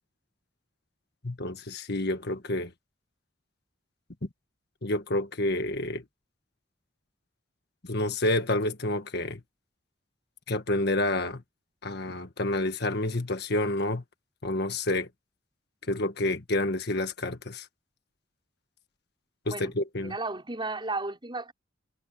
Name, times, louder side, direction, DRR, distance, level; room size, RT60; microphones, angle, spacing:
voice 1, 1.2-2.7 4.8-6.0 7.9-9.4 10.5-11.4 11.8-14.0 14.4-15.1 15.9-17.7 19.5-20.1, left 2 dB, 60° left, 1.6 m, -29 dB
voice 2, 20.0-21.5, right 3 dB, 25° right, 6.0 m, -34 dB
head